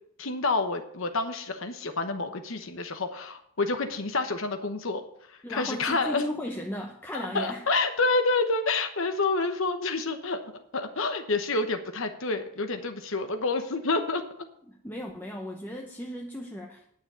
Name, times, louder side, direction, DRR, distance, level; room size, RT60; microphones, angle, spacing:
voice 1, 0.2-6.2 7.1-10.4 10.7-14.2, left 3 dB, 65° left, 7 dB, 1.1 m, -28 dB
voice 2, 5.4-7.6 14.7-16.9, left 1 dB, 10° left, 0 dB, 0.7 m, -36 dB
9.6 x 6.5 x 8.3 m, 0.70 s
head